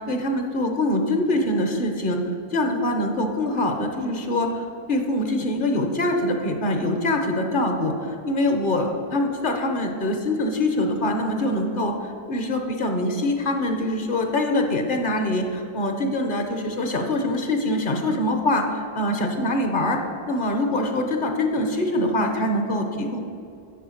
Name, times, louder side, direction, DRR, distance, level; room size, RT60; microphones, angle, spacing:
voice 1, 0.0-2.2 2.5-20.0 20.3-23.2, left 1 dB, 55° left, 4 dB, 1.0 m, -24 dB
9.4 x 4.5 x 6.4 m, 2.5 s
omnidirectional pair, 1.1 m